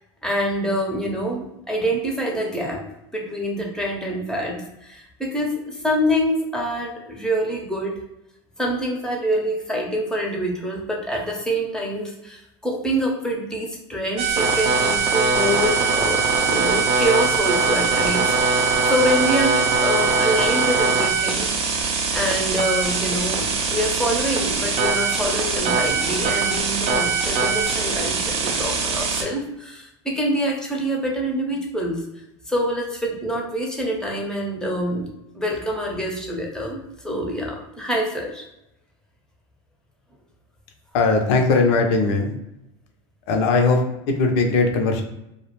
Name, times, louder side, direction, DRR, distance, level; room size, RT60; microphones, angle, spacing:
voice 1, 0.2-2.8 3.1-8.0 8.6-21.5 22.1-32.0 32.5-35.1 35.3-38.5, equal, 5° left, -1 dB, 0.7 m, -26 dB
sound 1, 14.2-29.2, right 4 dB, 40° right, 0.5 m, -21 dB
voice 2, 40.9-42.3 43.3-45.0, left 3 dB, 65° left, 4 dB, 0.5 m, -19 dB
2.3 x 2.1 x 3.0 m, 0.87 s
supercardioid pair, 100°, 15 cm